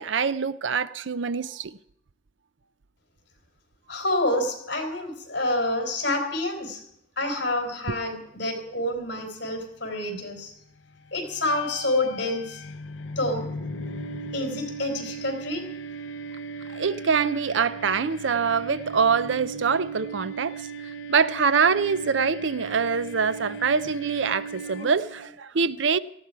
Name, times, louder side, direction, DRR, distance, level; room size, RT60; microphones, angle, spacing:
voice 1, 0.0-1.7 7.9-8.0 16.7-20.6 21.1-26.0, right 5 dB, 75° right, 0.6 m, -24 dB
voice 2, 3.9-6.8 7.2-10.5 11.1-12.6 13.2-13.5 14.3-15.6, left 1 dB, 60° left, 3.9 m, -28 dB
sound 1, 11.2-25.3, right 2 dB, 75° left, 0.6 m, -37 dB
18.5 x 14.0 x 4.7 m
head